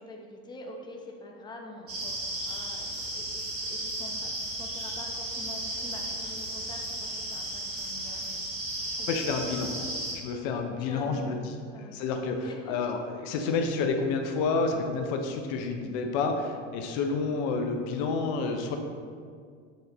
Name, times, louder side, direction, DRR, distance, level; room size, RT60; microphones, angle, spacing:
voice 1, 0.0-3.3 3.6-8.3 9.0-9.2 9.8-10.0 10.9-12.0 12.4-12.8 13.3-13.5, left 2 dB, 10° left, 0 dB, 0.9 m, -46 dB
sound 1, 1.9-10.1, right 1 dB, 35° right, 1.8 m, -34 dB
voice 2, 9.1-9.7 10.1-11.5 11.9-18.8, left 4 dB, 65° left, 4 dB, 0.8 m, -29 dB
8.1 x 4.1 x 4.0 m, 2.1 s
supercardioid pair, 105°, 37 cm